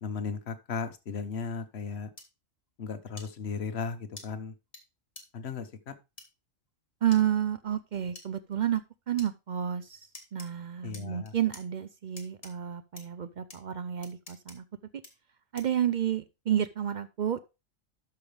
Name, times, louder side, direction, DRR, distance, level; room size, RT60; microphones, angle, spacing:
voice 1, 0.0-2.1 2.8-4.5 5.3-5.9 10.8-11.3, left 5 dB, 55° left, 9 dB, 1.3 m, -36 dB
sound 1, 2.2-2.3 3.2-3.3 4.2-4.3 4.7-4.8 5.2-5.3 6.2-6.3 7.1-7.2 8.2-8.3 9.2-9.3 10.1-10.5 10.9-11.6 12.2-12.5 13.0-13.1 13.5-13.6 14.0-14.6 15.0-15.1 15.6-15.8, left 2 dB, 25° left, 1.8 m, -46 dB
voice 2, 7.0-8.8 9.1-14.6 15.5-17.4, right 10 dB, 65° right, 13 dB, 0.4 m, -30 dB
12.0 x 5.6 x 3.3 m, 0.27 s
omnidirectional pair, 1.4 m